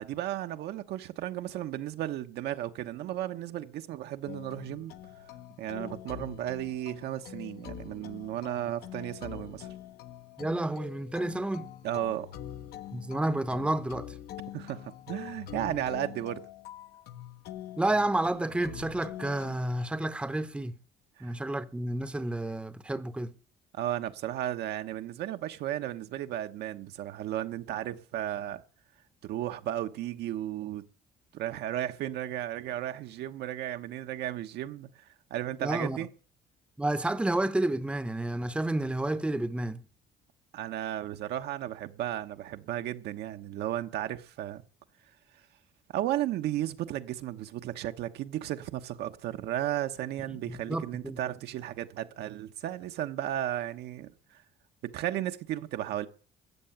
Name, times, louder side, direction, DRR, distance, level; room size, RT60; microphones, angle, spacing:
voice 1, 0.0-4.9 5.6-9.7 11.8-12.3 14.5-16.4 21.2-21.3 23.7-28.6 29.2-30.8 31.3-36.1 40.5-44.6 45.9-54.4 54.8-56.1, right 12 dB, 75° right, 1.1 m, -34 dB
sound 1, 4.3-19.8, left 11 dB, 70° left, 1.1 m, -44 dB
voice 2, 10.4-11.7 12.9-14.1 17.8-20.7 21.2-23.3 35.6-36.0 36.8-39.8 50.4-51.2, right 1 dB, 5° right, 0.8 m, -30 dB
14.0 x 7.9 x 8.7 m
cardioid pair, 110°, 17 cm